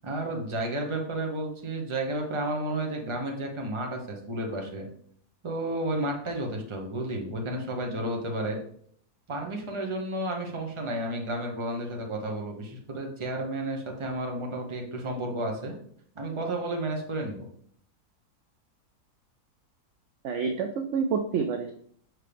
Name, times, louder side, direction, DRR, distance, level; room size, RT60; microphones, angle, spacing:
voice 1, 0.0-4.9 5.4-8.6 9.3-15.7 16.1-17.5, right 1 dB, 25° right, 1 dB, 0.7 m, -32 dB
voice 2, 20.2-21.7, right 5 dB, 70° right, 5 dB, 0.7 m, -28 dB
6.2 x 4.6 x 3.4 m, 0.64 s
omnidirectional pair, 1.7 m